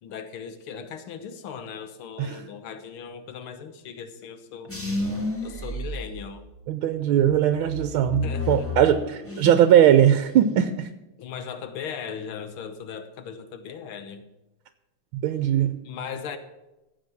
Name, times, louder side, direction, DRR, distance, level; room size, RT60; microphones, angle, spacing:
voice 1, 0.0-4.8 5.4-6.5 8.2-8.7 9.4-9.5 11.2-14.3 15.9-16.4, left 7 dB, 80° left, 9 dB, 1.9 m, -38 dB
sound 1, 4.7-6.7 7.2-9.8 10.1-10.6, left 3 dB, 5° left, 1.6 m, -32 dB
voice 2, 6.7-10.9 15.1-15.8, right 10 dB, 75° right, 10 dB, 1.5 m, -20 dB
15.0 x 7.8 x 6.0 m, 0.99 s
omnidirectional pair, 2.4 m